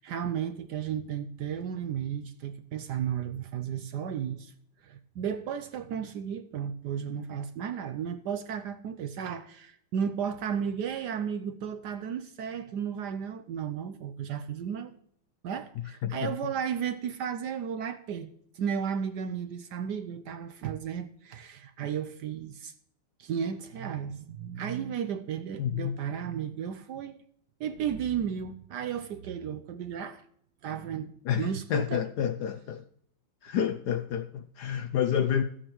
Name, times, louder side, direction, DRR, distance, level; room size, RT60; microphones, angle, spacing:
voice 1, 0.0-4.5 4.8-14.9 15.4-22.7 23.2-27.2 27.6-30.2 30.6-32.0, right 8 dB, 70° right, 1.0 m, -34 dB
voice 2, 25.6-26.0 31.3-32.8 33.4-35.4, left 8 dB, 70° left, 1.0 m, -29 dB
13.5 x 8.7 x 3.0 m
omnidirectional pair, 2.2 m